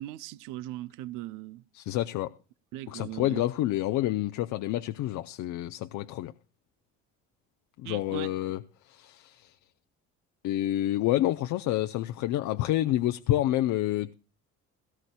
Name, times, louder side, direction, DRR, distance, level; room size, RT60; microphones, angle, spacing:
voice 1, 0.0-1.6 2.7-3.4 7.8-8.3, right 15 dB, 85° right, 0.6 m, -39 dB
voice 2, 1.8-2.3 2.9-6.3 7.8-8.6 8.9-9.5 10.4-14.1, left 14 dB, 70° left, 0.6 m, -28 dB
18.0 x 14.5 x 2.3 m
cardioid pair, 100°, 31 cm